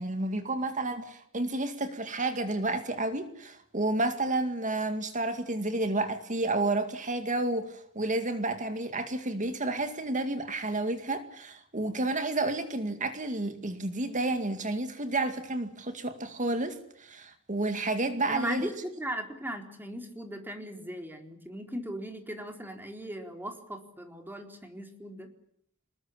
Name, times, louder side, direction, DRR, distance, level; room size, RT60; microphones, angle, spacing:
voice 1, 0.0-18.7, right 2 dB, 35° right, 8 dB, 2.2 m, -31 dB
voice 2, 18.3-25.3, equal, 10° right, 4 dB, 4.1 m, -38 dB
25.5 x 20.5 x 8.7 m, 0.69 s
head